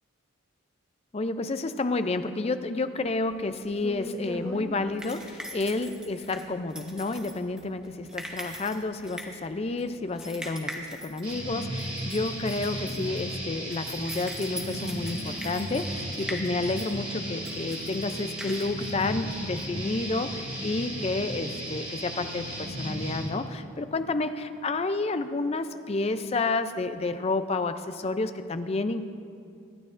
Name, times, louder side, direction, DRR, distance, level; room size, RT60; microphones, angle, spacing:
voice 1, 1.1-29.1, left 3 dB, 30° left, 10 dB, 0.4 m, -30 dB
sound 1, 3.1-19.8, equal, 5° right, 0.8 m, -42 dB
sound 2, 11.2-23.3, equal, 25° right, 3.2 m, -35 dB
24.0 x 9.7 x 2.5 m, 2.5 s
head